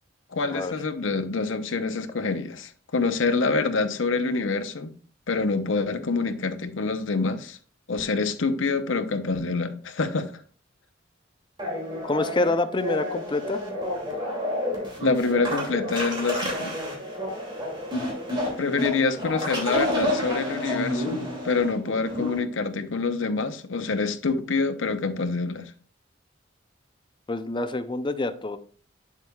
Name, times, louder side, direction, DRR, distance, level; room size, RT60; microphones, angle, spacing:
voice 1, 0.3-4.9 5.3-7.6 7.9-10.3 15.0-16.8 18.6-25.7, left 4 dB, 75° left, 0.8 m, -26 dB
sound 1, 11.6-22.4, left 1 dB, 25° right, 2.6 m, -30 dB
voice 2, 12.0-13.6 27.3-28.6, left 2 dB, 25° left, 0.5 m, -26 dB
8.0 x 7.3 x 2.3 m
head